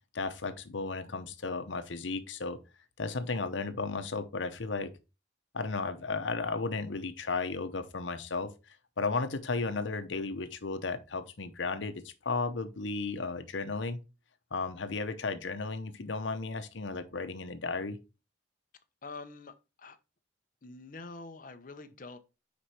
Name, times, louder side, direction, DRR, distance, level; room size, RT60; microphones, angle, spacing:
voice 1, 0.1-2.6 3.0-4.9 5.5-14.0 14.5-18.0, left 3 dB, 80° left, 0.8 m, -34 dB
voice 2, 19.0-20.0 20.6-22.2, left 3 dB, 45° left, 0.7 m, -46 dB
5.1 x 4.9 x 4.3 m
head